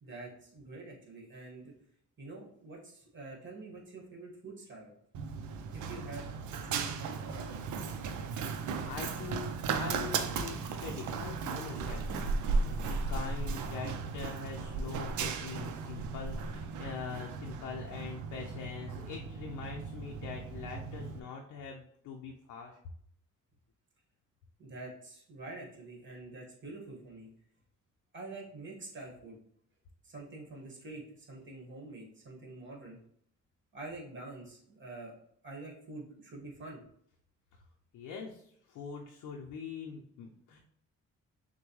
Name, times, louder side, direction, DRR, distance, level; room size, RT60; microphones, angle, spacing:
voice 1, 0.0-1.7 2.2-4.9 5.7-7.6 24.6-27.3 28.1-29.4 30.0-33.0 33.7-35.1 35.4-36.8, right 2 dB, 40° right, -1 dB, 1.6 m, -46 dB
Run, 5.1-21.2, right 4 dB, 75° right, 0.6 m, -36 dB
voice 2, 8.8-22.8 37.9-40.6, left 5 dB, 85° left, 0 dB, 0.6 m, -43 dB
6.2 x 2.2 x 3.1 m, 0.68 s
cardioid pair, 90°, 30 cm